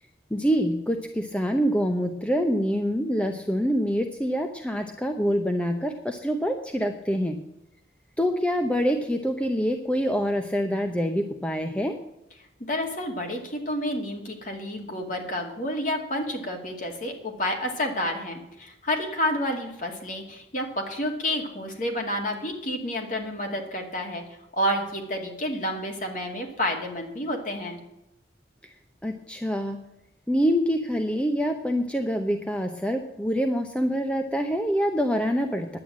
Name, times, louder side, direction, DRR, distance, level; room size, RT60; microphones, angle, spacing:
voice 1, 0.3-7.4 8.2-12.0 29.0-29.8 30.3-35.8, equal, 5° left, 5 dB, 0.7 m, -25 dB
voice 2, 12.7-24.2 24.5-27.8, left 1 dB, 45° left, 3 dB, 2.4 m, -29 dB
10.5 x 8.9 x 7.4 m, 0.88 s
head